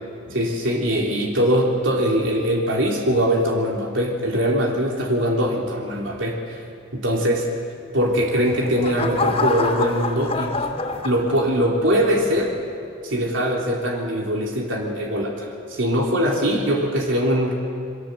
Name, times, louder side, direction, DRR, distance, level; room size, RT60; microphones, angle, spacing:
voice 1, 0.3-6.6 6.9-7.4 7.9-10.5 11.0-12.5 13.0-17.5, equal, 80° right, -1 dB, 3.5 m, -22 dB
sound 1, 8.1-11.7 12.2-12.6, left 3 dB, 30° left, 2.8 m, -27 dB
28.5 x 23.5 x 8.0 m, 2.4 s
head